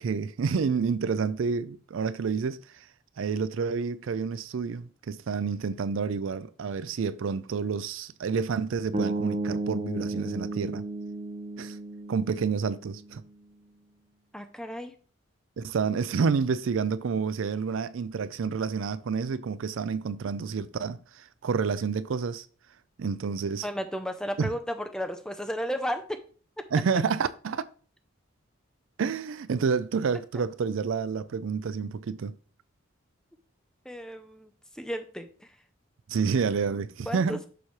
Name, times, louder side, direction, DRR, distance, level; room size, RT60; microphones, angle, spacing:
voice 1, 0.0-2.9 3.2-10.8 11.6-11.8 12.1-13.2 15.6-22.5 23.0-23.7 24.4-24.5 26.7-27.7 29.0-32.3 36.1-37.4, right 5 dB, 75° right, 0.4 m, -29 dB
sound 1, 8.9-13.1, right 2 dB, 30° right, 0.8 m, -33 dB
voice 2, 14.3-14.9 23.6-26.0 33.8-35.6 37.1-37.5, equal, 5° left, 0.5 m, -34 dB
7.0 x 3.2 x 5.8 m
head